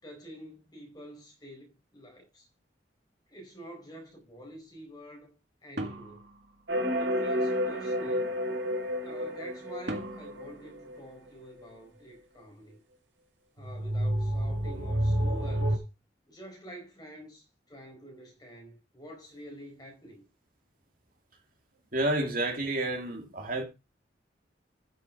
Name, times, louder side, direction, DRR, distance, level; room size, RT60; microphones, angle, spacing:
voice 1, 0.0-2.5 3.3-5.4 5.6-6.3 6.9-8.2 9.0-12.8 13.5-15.8 16.3-20.2, equal, 20° left, 4.5 m, -48 dB
sound 1, 5.8-7.3 9.9-11.7, right 1 dB, 65° right, 2.1 m, -41 dB
sound 2, 6.7-11.0 13.6-15.8, equal, 90° right, 3.0 m, -30 dB
voice 2, 21.9-23.6, right 1 dB, 50° right, 2.9 m, -30 dB
12.5 x 6.8 x 4.6 m
head